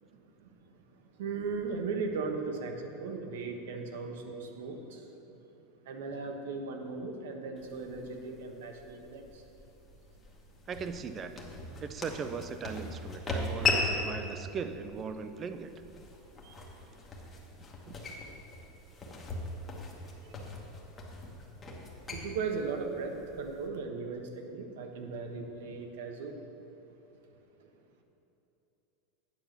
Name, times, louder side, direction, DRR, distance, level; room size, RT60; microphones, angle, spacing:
voice 1, 1.2-5.0 5.9-9.4 16.4-16.5 20.2-20.5 22.1-26.4 27.6-27.7, right 4 dB, 80° right, 4 dB, 1.1 m, -37 dB
sound 1, 7.6-23.7, left 3 dB, 15° left, 1.1 m, -38 dB
voice 2, 10.7-11.4 11.8-15.7 17.9-18.0, right 6 dB, 20° right, 10 dB, 0.4 m, -39 dB
9.1 x 6.0 x 6.6 m, 2.9 s
supercardioid pair, 170°, 0 cm